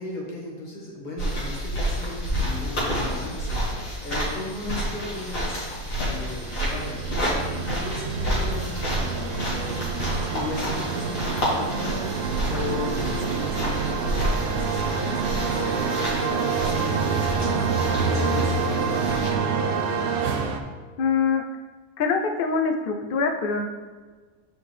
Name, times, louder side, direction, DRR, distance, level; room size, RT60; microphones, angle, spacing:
voice 1, 0.0-3.6 4.0-5.6 6.0-10.0 10.3-12.1 12.5-17.6 18.1-19.5, left 2 dB, 35° left, -3 dB, 1.4 m, -36 dB
sound 1, 1.2-19.3, equal, 65° left, 2.0 m, -30 dB
sound 2, 5.9-20.6, right 5 dB, 75° right, 0.5 m, -27 dB
voice 2, 21.0-21.4 22.0-23.7, left 5 dB, 90° left, 5 dB, 0.4 m, -24 dB
6.7 x 5.2 x 3.2 m, 1.4 s
omnidirectional pair, 1.5 m